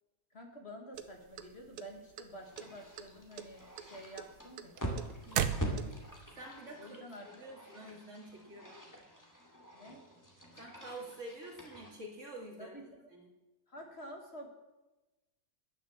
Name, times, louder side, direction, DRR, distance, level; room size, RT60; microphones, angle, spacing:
voice 1, 0.3-4.9 6.8-7.3 9.7-10.0 12.6-13.1 13.7-14.5, equal, 40° left, 2 dB, 2.0 m, -49 dB
sound 1, 0.9-2.2 2.6-3.1 3.4-6.2, right 9 dB, 85° right, 1.4 m, -36 dB
sound 2, 2.4-11.9, right 1 dB, 10° left, 2.3 m, -45 dB
voice 2, 5.2-6.0 6.4-9.0 10.6-12.8 13.1-13.3, right 1 dB, 50° right, 0 dB, 2.8 m, -48 dB
10.5 x 10.5 x 7.2 m, 1.1 s
omnidirectional pair, 1.6 m